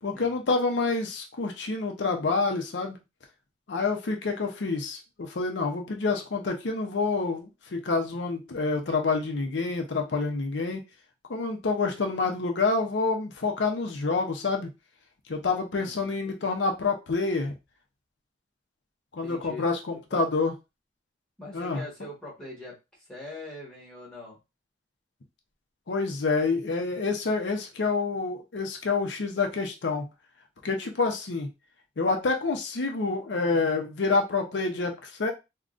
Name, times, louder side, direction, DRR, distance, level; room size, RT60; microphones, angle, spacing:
voice 1, 0.0-3.0 3.7-10.8 11.3-14.7 15.3-17.5 19.1-20.5 21.5-21.8 25.9-30.1 30.6-31.5 32.0-35.3, left 3 dB, 85° left, 3 dB, 0.6 m, -27 dB
voice 2, 15.8-16.2 19.2-20.2 21.4-22.7 23.1-24.4, left 2 dB, 5° left, -4 dB, 1.4 m, -42 dB
3.6 x 2.2 x 2.4 m, 0.25 s
head